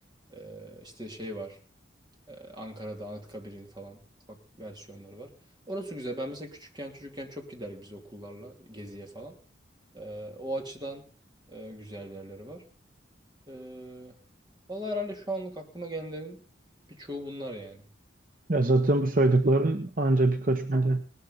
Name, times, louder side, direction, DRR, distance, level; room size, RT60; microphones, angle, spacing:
voice 1, 0.3-1.6 2.3-4.0 4.3-5.3 5.7-9.3 9.9-11.0 11.5-12.6 13.5-14.2 14.7-16.4 16.9-17.9, equal, 20° right, 2.9 m, -39 dB
voice 2, 18.5-21.0, right 2 dB, 45° right, 1.0 m, -23 dB
19.0 x 12.5 x 4.0 m
head